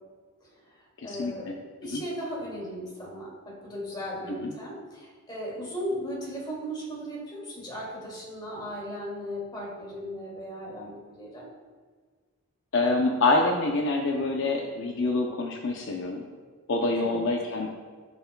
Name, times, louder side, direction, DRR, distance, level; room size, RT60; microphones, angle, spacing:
voice 1, 0.4-11.5 16.9-17.2, equal, 20° left, -4 dB, 2.3 m, -37 dB
voice 2, 1.0-1.5 1.9-2.0 4.4-4.5 12.7-16.2 16.7-17.7, left 2 dB, 60° left, 1 dB, 0.6 m, -26 dB
14.0 x 5.6 x 2.2 m, 1.5 s
head